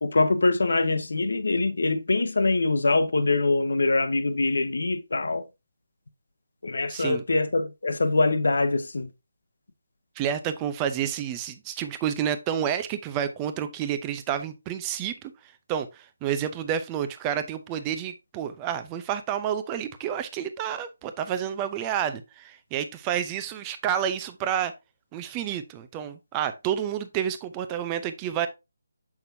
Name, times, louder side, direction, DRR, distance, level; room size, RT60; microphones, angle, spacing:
voice 1, 0.0-5.4 6.6-9.1, left 3 dB, 70° left, 1.0 m, -24 dB
voice 2, 6.9-7.2 10.2-15.3 15.7-24.7 25.1-28.5, right 9 dB, 20° right, 0.7 m, -29 dB
6.8 x 5.9 x 2.7 m
figure-of-eight pair, 155°, 0 cm